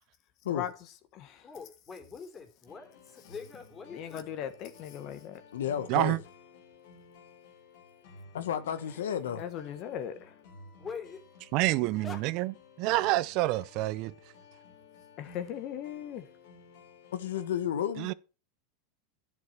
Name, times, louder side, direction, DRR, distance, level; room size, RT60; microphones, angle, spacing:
voice 1, 0.5-1.5 3.9-5.4 9.3-10.3 15.2-16.3, left 10 dB, 50° left, 1.3 m, -39 dB
voice 2, 1.3-4.2 10.8-11.2 11.8-12.2, left 5 dB, 25° left, 3.0 m, -44 dB
sound 1, 2.7-17.5, left 4 dB, 70° left, 3.5 m, -55 dB
voice 3, 5.5-6.2 8.3-9.4 17.1-18.1, left 9 dB, 85° left, 1.2 m, -32 dB
voice 4, 11.5-12.5 12.8-14.1 18.0-18.1, right 18 dB, 55° right, 0.5 m, -27 dB
10.5 x 7.4 x 5.8 m
hypercardioid pair, 115°, 0 cm